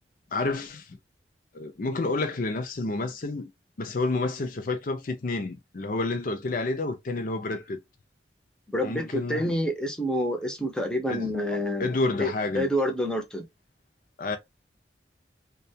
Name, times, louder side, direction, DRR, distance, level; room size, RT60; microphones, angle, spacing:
voice 1, 0.3-1.0 1.5-3.5 3.8-7.8 8.8-9.5 11.1-11.3 11.8-12.7 14.2-14.4, left 3 dB, 50° left, 0.5 m, -29 dB
voice 2, 8.7-11.9 12.2-13.4, equal, 5° left, 0.6 m, -28 dB
2.3 x 2.2 x 2.7 m
head